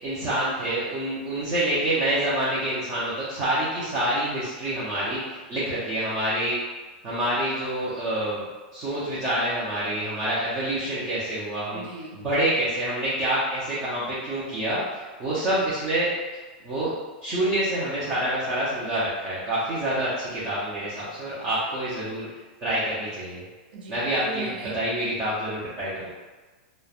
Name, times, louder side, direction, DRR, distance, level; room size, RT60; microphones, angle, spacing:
voice 1, 0.0-6.6 7.0-8.4 8.7-11.8 12.2-16.1 16.6-16.9 17.2-22.3 22.6-23.4 23.9-24.5 24.7-26.1, right 1 dB, 20° right, -9 dB, 0.5 m, -27 dB
voice 2, 11.7-12.3 23.7-24.9, right 3 dB, 65° right, -2 dB, 0.6 m, -38 dB
3.0 x 2.0 x 2.3 m, 1.3 s
supercardioid pair, 175°, 5 cm